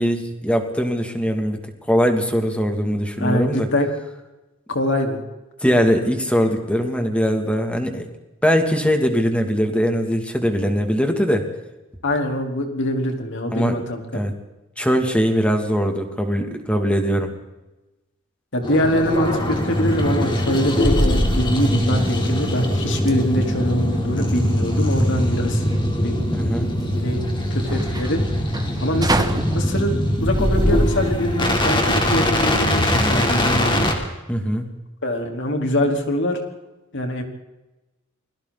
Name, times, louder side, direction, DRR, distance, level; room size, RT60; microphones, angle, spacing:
voice 1, 0.0-1.6 1.9-3.7 5.6-8.1 8.4-11.5 13.5-13.8 14.1-14.3 14.8-17.3 26.3-26.7 34.3-34.6, equal, 5° left, 4 dB, 2.7 m, -21 dB
voice 2, 3.2-3.9 4.7-5.2 12.0-14.0 18.5-25.6 26.0-26.2 27.0-27.2 27.5-28.2 28.8-29.9 30.2-33.9 35.0-36.4 36.9-37.2, left 1 dB, 65° left, 3 dB, 4.2 m, -23 dB
sound 1, 18.6-33.9, left 1 dB, 25° left, 3.8 m, -21 dB
sound 2, 21.6-31.6, right 2 dB, 20° right, 1.3 m, -32 dB
28.5 x 22.0 x 4.2 m, 1.1 s
head